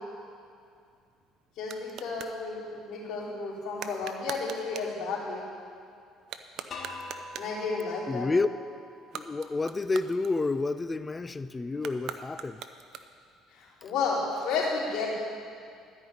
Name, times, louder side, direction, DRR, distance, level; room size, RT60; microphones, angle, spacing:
sound 1, 0.7-2.4 3.8-5.0 6.2-7.6 9.0-10.8 11.8-13.4, right 8 dB, 65° right, 0.6 m, -43 dB
voice 1, 1.6-5.4 7.4-8.3 13.5-15.1, left 4 dB, 65° left, -6 dB, 3.7 m, -32 dB
sound 2, 6.7-9.6, left 2 dB, 40° left, 1.9 m, -44 dB
voice 2, 8.1-8.5 9.1-12.6, left 3 dB, 20° left, 13 dB, 0.4 m, -29 dB
13.5 x 5.4 x 8.9 m, 2.4 s
cardioid pair, 100°, 0 cm